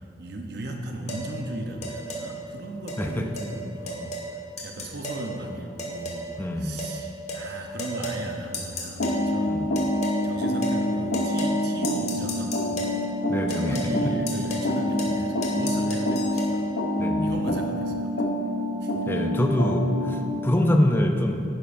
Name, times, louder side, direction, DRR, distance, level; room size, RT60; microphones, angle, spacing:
voice 1, 0.2-9.7 10.2-12.8 13.3-16.7 17.2-18.1 18.8-19.0 20.3-20.4, right 1 dB, 60° right, 2 dB, 0.8 m, -36 dB
sound 1, 1.1-1.3 1.8-2.3 2.9-3.0 3.4-3.5 3.9-4.3 4.6-5.3 5.8-6.3 6.8-7.0 7.3-7.5 7.8-8.2 8.5-9.2 9.8-10.2 10.6-10.8 11.1-11.6 11.8-13.0 13.5-13.9 14.3-14.7 15.0-15.2 15.4-16.5, equal, 40° left, 1.5 m, -33 dB
voice 2, 6.4-6.8 9.5-9.7 13.3-13.8 17.0-17.3 19.1-21.4, left 1 dB, 10° left, 3 dB, 0.5 m, -24 dB
sound 2, 9.0-20.3, left 1 dB, 80° left, 0.8 m, -27 dB
11.5 x 10.5 x 2.6 m, 2.7 s
head